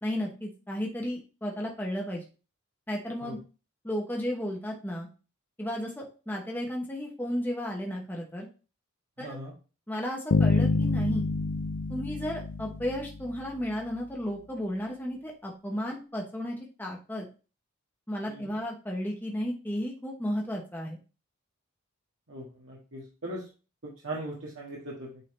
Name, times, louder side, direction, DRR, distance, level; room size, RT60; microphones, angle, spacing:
voice 1, 0.0-2.2 2.9-3.4 3.8-5.1 5.6-8.5 9.2-9.4 9.9-11.3 11.9-17.3 18.1-21.0, equal, 10° left, -1 dB, 0.9 m, -33 dB
voice 2, 9.2-9.5 18.3-18.5 22.3-23.5 23.8-25.2, right 1 dB, 65° right, -5 dB, 1.6 m, -39 dB
Bass guitar, 10.3-13.4, left 3 dB, 65° left, 0.4 m, -27 dB
8.7 x 3.8 x 3.3 m, 0.33 s
head